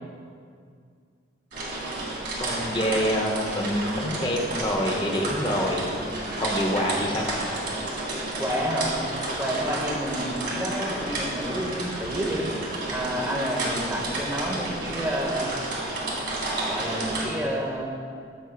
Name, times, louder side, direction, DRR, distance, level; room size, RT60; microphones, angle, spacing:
sound 1, 1.5-17.2, right 2 dB, 65° right, 1.9 m, -31 dB
voice 1, 2.4-5.9 6.4-7.4, equal, 25° left, 0 dB, 0.8 m, -26 dB
voice 2, 8.4-8.9 9.4-12.5 12.9-15.5 16.7-17.8, equal, 10° right, -3 dB, 1.0 m, -29 dB
14.0 x 5.4 x 2.3 m, 2.2 s
head